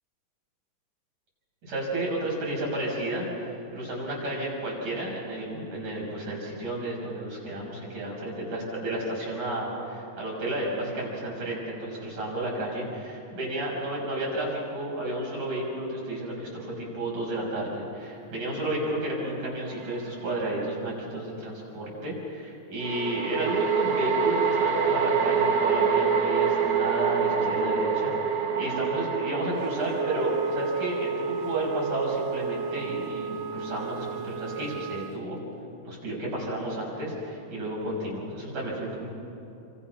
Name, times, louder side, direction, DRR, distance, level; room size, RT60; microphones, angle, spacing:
voice 1, 1.6-3.3 3.7-35.4 35.8-39.1, right 1 dB, 90° right, -3 dB, 8.0 m, -32 dB
sound 1, 19.8-20.0 22.8-34.2, right 6 dB, 45° right, 1.5 m, -27 dB
Wind instrument woodwind instrument, 29.9-35.2, right 6 dB, 75° right, 1.7 m, -33 dB
29.0 x 26.5 x 6.0 m, 2.8 s
omnidirectional pair, 3.3 m